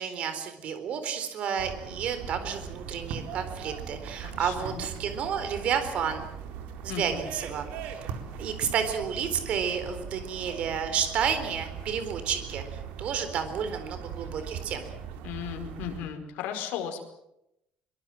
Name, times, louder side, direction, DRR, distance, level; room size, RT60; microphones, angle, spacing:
voice 1, 0.0-6.2 6.8-8.1 8.4-14.9, right 7 dB, 45° right, 9 dB, 4.0 m, -31 dB
sound 1, 1.6-16.0, right 7 dB, 85° right, 4.0 m, -40 dB
voice 2, 4.2-4.8 6.9-7.2 15.2-17.0, left 9 dB, 80° left, 4 dB, 5.0 m, -36 dB
24.0 x 23.0 x 7.5 m, 0.83 s
cardioid pair, 180°, 3 cm